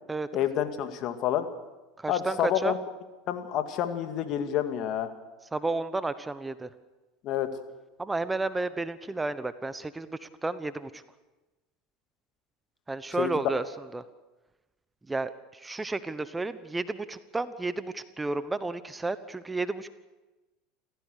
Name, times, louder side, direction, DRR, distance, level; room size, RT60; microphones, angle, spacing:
voice 1, 0.3-1.5 2.1-2.8 3.3-5.1 7.2-7.5 13.2-13.3, left 10 dB, 50° left, 8 dB, 2.1 m, -28 dB
voice 2, 2.0-2.7 5.5-6.7 8.0-11.0 12.9-13.6 13.9-14.0 15.1-19.9, right 3 dB, 15° right, 14 dB, 1.0 m, -32 dB
28.5 x 15.0 x 6.7 m, 1.1 s
hypercardioid pair, 80°, 0 cm